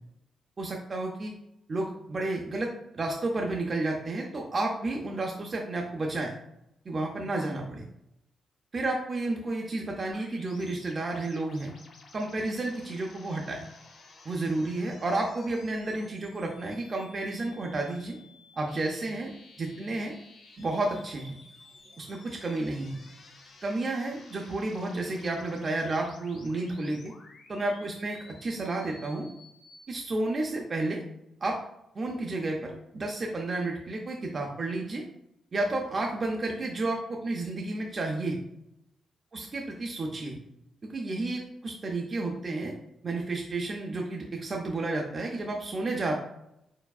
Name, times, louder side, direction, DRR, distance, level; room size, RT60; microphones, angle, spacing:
voice 1, 0.6-1.3 1.7-2.7 2.9-6.3 6.9-7.8 8.7-11.7 12.1-13.6 14.3-18.2 18.6-19.3 19.6-20.1 20.6-21.4 22.0-23.0 23.6-27.1 27.5-29.3 29.9-31.0 31.4-31.6 31.9-35.0 35.5-38.4 39.3-40.4 40.8-42.7 43.0-46.1, right 2 dB, 30° right, 0 dB, 0.5 m, -31 dB
sound 1, 10.1-29.8, left 3 dB, 55° left, 1.0 m, -54 dB
4.6 x 4.4 x 2.3 m, 0.82 s
wide cardioid pair, 175°, 0 cm